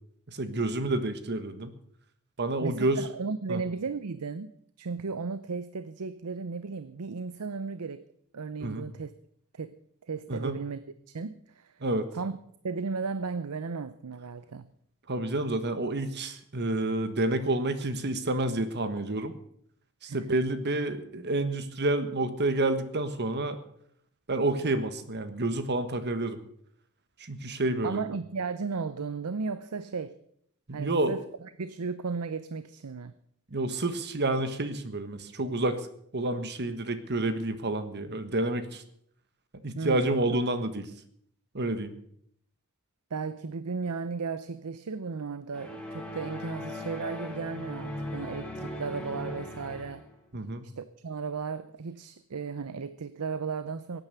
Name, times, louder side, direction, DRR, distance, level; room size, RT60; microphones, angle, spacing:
voice 1, 0.3-1.7 2.4-3.0 3.5-3.6 8.6-8.9 10.3-10.6 11.8-12.1 15.1-19.3 20.0-23.6 24.3-26.4 27.2-28.0 30.7-31.1 33.5-35.8 36.1-38.8 39.6-40.8 41.5-41.9 50.3-50.7, right 2 dB, 50° right, 1.4 m, -29 dB
voice 2, 2.6-4.5 4.8-8.0 8.3-9.1 9.5-9.8 10.0-10.8 11.1-11.8 12.1-12.4 12.6-14.7 20.0-20.2 27.8-30.2 30.7-31.2 31.6-33.1 39.7-40.1 43.1-50.0 50.6-54.0, right 4 dB, 90° right, 0.6 m, -35 dB
sound 1, 45.5-50.2, left 1 dB, 5° left, 2.8 m, -38 dB
17.0 x 9.4 x 6.8 m
head